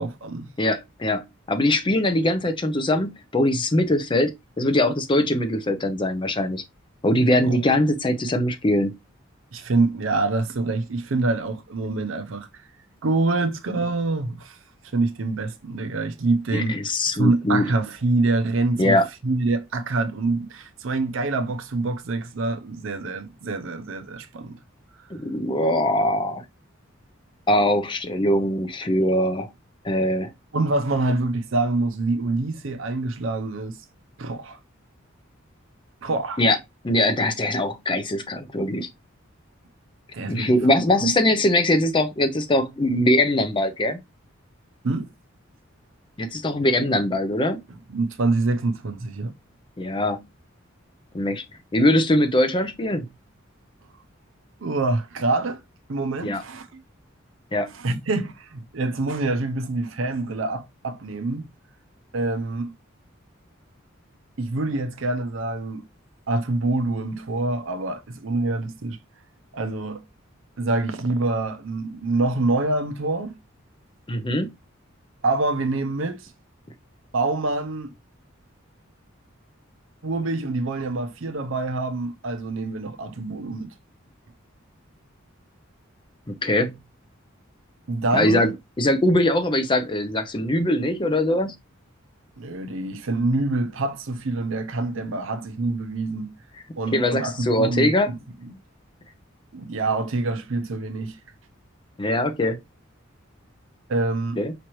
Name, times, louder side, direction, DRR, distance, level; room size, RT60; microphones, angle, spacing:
voice 1, 0.0-0.5 7.4-7.6 9.5-12.5 13.0-14.6 14.9-16.8 17.2-19.0 19.2-24.6 30.5-33.8 34.2-34.6 36.0-36.4 40.1-40.5 41.0-41.1 44.8-45.1 47.9-49.3 54.6-55.6 55.9-56.8 57.7-61.5 62.1-62.7 64.4-65.8 66.3-69.0 69.5-70.0 70.6-73.4 75.2-76.3 77.1-77.9 80.0-83.7 87.9-88.5 92.4-96.3 96.8-98.6 99.5-101.2 103.9-104.4, right 2 dB, 70° right, 0.6 m, -26 dB
voice 2, 0.6-6.6 7.0-8.9 16.5-17.7 18.8-19.1 25.1-26.4 27.5-29.5 29.8-30.3 36.4-36.6 36.8-38.9 40.3-44.0 46.2-47.6 49.8-50.3 51.1-51.4 51.7-53.1 56.2-56.4 57.5-57.7 74.1-74.5 86.3-86.8 88.1-88.5 88.8-91.6 96.9-98.1 102.0-102.6 104.4-104.5, left 1 dB, 25° left, 0.5 m, -22 dB
5.0 x 3.0 x 3.0 m
head